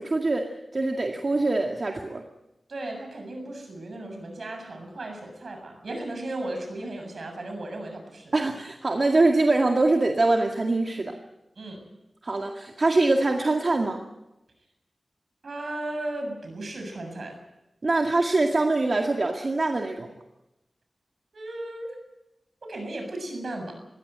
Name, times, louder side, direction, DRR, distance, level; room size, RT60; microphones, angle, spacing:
voice 1, 0.0-2.2 8.3-11.2 12.2-14.0 17.8-20.1, right 2 dB, 50° right, 2 dB, 2.0 m, -23 dB
voice 2, 2.7-8.3 11.6-11.8 15.4-17.4 21.3-22.0 22.6-23.7, right 1 dB, 70° right, 5 dB, 7.3 m, -35 dB
21.5 x 16.5 x 9.1 m, 0.94 s
wide cardioid pair, 90°, 0 cm